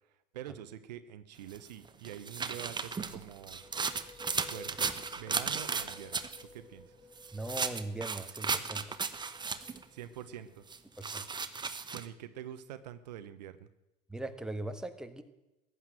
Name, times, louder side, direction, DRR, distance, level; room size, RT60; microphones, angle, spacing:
voice 1, 0.3-3.6 4.5-6.2 6.5-6.9 9.9-10.6 11.9-13.7, right 11 dB, 80° right, 12 dB, 1.0 m, -45 dB
sound 1, 1.5-6.4 7.2-9.8 10.7-12.1, right 5 dB, 20° right, 1.2 m, -35 dB
sound 2, 3.3-10.9, left 2 dB, 15° left, 2.2 m, -55 dB
voice 2, 7.3-9.0 11.0-11.3 14.1-15.2, right 2 dB, 5° right, 7 dB, 1.6 m, -40 dB
15.0 x 11.0 x 7.6 m, 0.95 s
hypercardioid pair, 80°, 21 cm